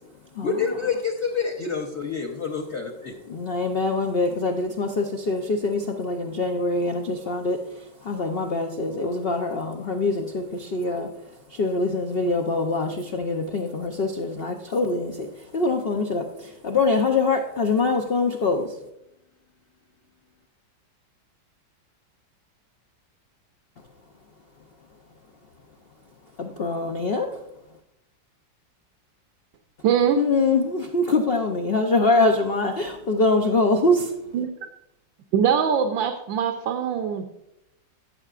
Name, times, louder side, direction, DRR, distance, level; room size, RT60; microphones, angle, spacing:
voice 1, 0.4-3.2, left 5 dB, 50° left, -1 dB, 0.9 m, -27 dB
voice 2, 3.3-18.8 26.4-27.5 30.2-34.3, left 3 dB, 80° left, 3 dB, 0.5 m, -24 dB
voice 3, 29.8-30.2 34.3-34.7 35.3-37.3, right 8 dB, 85° right, 5 dB, 1.4 m, -22 dB
14.5 x 6.7 x 2.5 m, 0.84 s
omnidirectional pair, 2.0 m